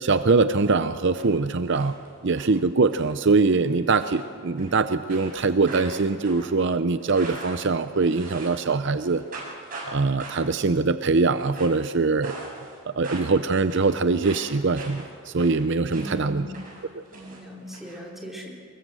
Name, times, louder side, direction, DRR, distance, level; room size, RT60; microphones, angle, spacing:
voice 1, 0.0-1.9 2.2-9.2 9.9-12.3 13.0-16.5, right 4 dB, 55° right, 11 dB, 0.6 m, -22 dB
sound 1, 0.6-1.3 1.6-2.4 2.9-3.1 3.4-3.6 4.0-4.8 5.1-8.7 8.9-9.9 10.2-10.6 11.2-11.9 12.2-12.8 13.0-16.3 16.5-18.0, right 3 dB, 40° right, 7.9 m, -42 dB
voice 2, 15.9-16.5 17.1-18.5, right 1 dB, ahead, -3 dB, 3.9 m, -39 dB
24.5 x 21.0 x 7.6 m, 2.1 s
head